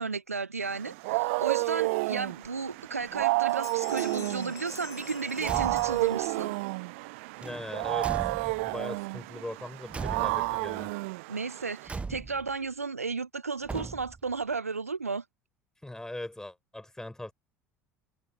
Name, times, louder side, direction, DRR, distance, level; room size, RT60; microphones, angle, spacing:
voice 1, 0.0-6.5 11.3-15.2, right 4 dB, 85° right, 1.2 m, -34 dB
Wild animals, 0.7-11.9, right 25 dB, 60° right, 0.6 m, -31 dB
Bell, 2.4-2.5 3.0-3.2 3.5-6.6, left 12 dB, 40° left, 5.3 m, -48 dB
Car / Truck / Slam, 5.4-6.1 7.4-8.8 9.9-10.7 11.9-12.6 13.6-14.3, right 4 dB, 15° right, 0.4 m, -38 dB
voice 2, 7.4-10.9 15.8-17.3, left 1 dB, 5° left, 7.0 m, -40 dB
figure-of-eight pair, 65°, 8 cm